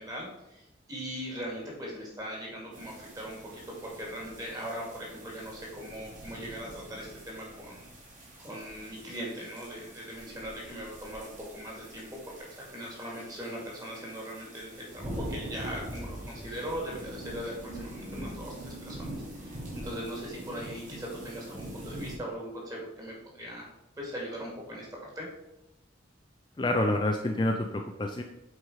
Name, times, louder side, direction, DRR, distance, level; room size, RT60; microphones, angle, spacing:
voice 1, 0.0-7.9 8.4-12.2 12.5-19.1 19.3-23.7 24.0-25.3, equal, 20° right, -3 dB, 2.2 m, -40 dB
sound 1, 2.7-22.2, right 1 dB, 40° right, 2.6 m, -43 dB
voice 2, 26.6-28.2, left 1 dB, 20° left, 3 dB, 0.4 m, -28 dB
7.8 x 4.6 x 4.8 m, 0.90 s
head